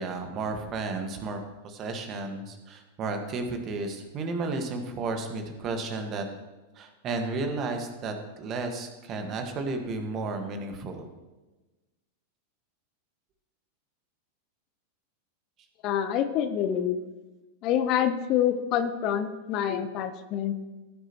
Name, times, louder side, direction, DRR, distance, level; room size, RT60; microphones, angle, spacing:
voice 1, 0.0-6.2 6.7-11.1, right 3 dB, 30° right, 5 dB, 1.7 m, -33 dB
voice 2, 15.8-17.0 17.6-20.5, left 9 dB, 40° left, 10 dB, 0.7 m, -26 dB
17.0 x 9.4 x 3.1 m, 1.1 s
figure-of-eight pair, 90°, 0 cm